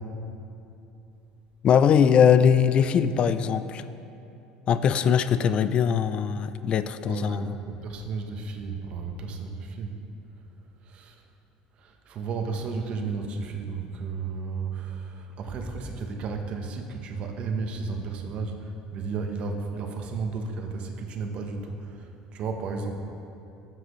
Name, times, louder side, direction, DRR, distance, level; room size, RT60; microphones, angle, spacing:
voice 1, 1.6-3.8 4.7-7.6, left 7 dB, 45° left, 12 dB, 0.3 m, -21 dB
voice 2, 7.1-9.9 12.1-15.0 15.4-18.5 18.9-21.7 22.3-23.0, right 4 dB, 50° right, 4 dB, 1.0 m, -33 dB
12.5 x 7.4 x 3.1 m, 2.8 s
supercardioid pair, 110°, 2 cm